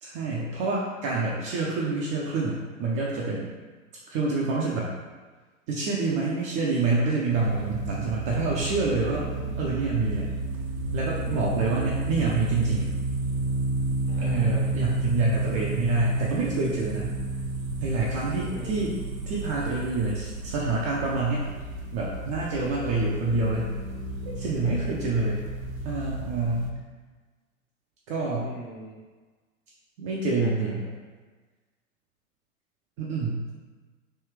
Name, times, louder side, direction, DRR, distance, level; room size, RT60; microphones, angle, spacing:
voice 1, 0.0-3.5 4.1-4.9 5.7-9.3 9.6-10.3 10.9-12.9 14.2-17.1 17.8-18.9 19.3-21.4 21.9-23.7 24.2-25.4 25.8-26.7 28.1-28.5 30.0-30.8 33.0-33.4, right 3 dB, 25° right, -4 dB, 0.3 m, -27 dB
sound 1, 7.3-26.7, right 2 dB, 85° right, 0.6 m, -31 dB
voice 2, 9.1-9.7 11.2-11.6 14.1-14.6 18.5-18.9 22.5-23.0 24.6-24.8 28.4-29.0 30.4-30.7, left 2 dB, 35° left, 0 dB, 0.7 m, -42 dB
3.3 x 2.8 x 3.1 m, 1.4 s
hypercardioid pair, 100°, 41 cm